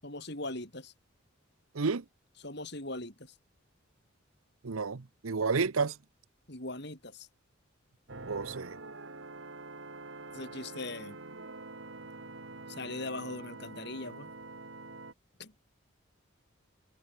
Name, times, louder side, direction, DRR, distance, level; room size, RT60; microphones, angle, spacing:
voice 1, 0.0-0.9 2.4-3.3 6.5-7.3 10.3-11.2 12.7-14.3 15.4-15.5, left 2 dB, 55° left, 6.5 m, -40 dB
voice 2, 1.7-2.0 4.6-6.0 8.3-8.7, right 4 dB, 85° right, 0.8 m, -31 dB
sound 1, 8.1-15.1, right 3 dB, 65° right, 2.1 m, -46 dB
head